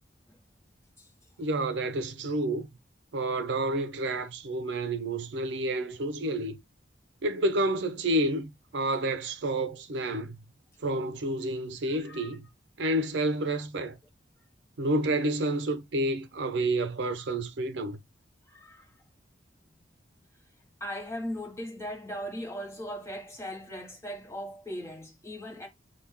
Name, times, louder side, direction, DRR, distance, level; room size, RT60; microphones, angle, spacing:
voice 1, 1.4-2.7 3.1-6.6 7.2-10.4 10.8-12.5 12.8-14.0 14.8-18.0, right 1 dB, 65° right, 0.6 m, -29 dB
voice 2, 11.9-12.3 18.5-18.9 20.8-25.7, equal, 15° left, 1.1 m, -38 dB
5.9 x 2.3 x 3.5 m
head